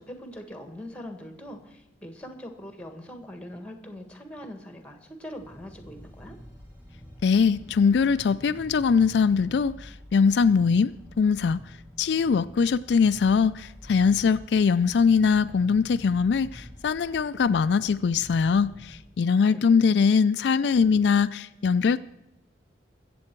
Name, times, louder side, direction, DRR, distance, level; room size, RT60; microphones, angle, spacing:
voice 1, 0.0-6.4 19.4-19.8, equal, 5° left, 1.5 m, -42 dB
sound 1, 5.3-19.0, equal, 10° right, 2.7 m, -47 dB
voice 2, 7.2-11.6 12.0-22.0, left 5 dB, 70° left, 0.3 m, -22 dB
22.5 x 7.7 x 4.5 m
head